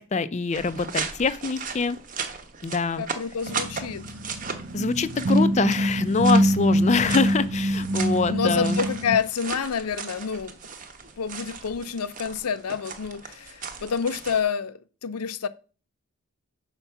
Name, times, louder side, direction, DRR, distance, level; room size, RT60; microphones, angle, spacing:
voice 1, 0.0-2.0 2.6-3.1 4.7-8.8, left 4 dB, 30° left, 0.4 m, -25 dB
sound 1, 0.5-14.4, right 5 dB, 35° right, 0.8 m, -37 dB
voice 2, 3.0-4.0 8.3-10.6 11.2-15.5, left 6 dB, 90° left, 0.5 m, -28 dB
sound 2, 3.5-9.2, right 1 dB, 60° right, 0.5 m, -24 dB
5.6 x 4.5 x 5.7 m
head